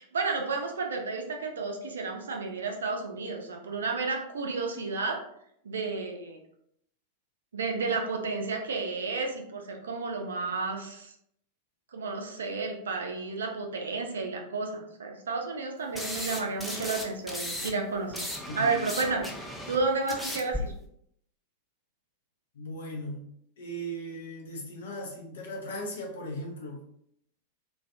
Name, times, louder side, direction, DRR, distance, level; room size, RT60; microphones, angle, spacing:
voice 1, 0.0-5.2 5.6-6.4 7.5-11.1 11.9-18.3 18.5-19.3 19.7-20.7, right 4 dB, 70° right, 2 dB, 0.4 m, -32 dB
sound 1, 16.0-17.7 18.0-20.6, left 1 dB, 5° left, 0.4 m, -36 dB
voice 2, 18.5-18.9 22.5-23.2 23.6-26.8, equal, 60° left, 0 dB, 0.6 m, -38 dB
2.4 x 2.2 x 2.5 m, 0.73 s
figure-of-eight pair, 90°, 0 cm